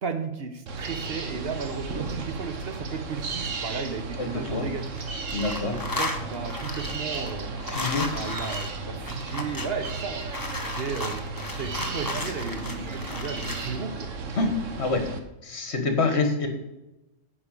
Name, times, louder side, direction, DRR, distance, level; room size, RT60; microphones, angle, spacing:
voice 1, 0.0-5.1 5.7-7.5 8.1-10.3 10.6-14.1, right 5 dB, 55° right, 7 dB, 1.0 m, -34 dB
sound 1, 0.7-15.2, right 3 dB, 80° right, 1.4 m, -34 dB
voice 2, 4.2-4.7 5.3-5.7 7.7-8.1 14.4-14.5 14.8-15.0 15.4-16.5, left 3 dB, 60° left, 5 dB, 1.8 m, -26 dB
sound 2, 4.2-5.0 5.3-13.7, left 2 dB, 20° left, 1.0 m, -35 dB
9.7 x 5.4 x 6.6 m, 0.94 s
omnidirectional pair, 1.3 m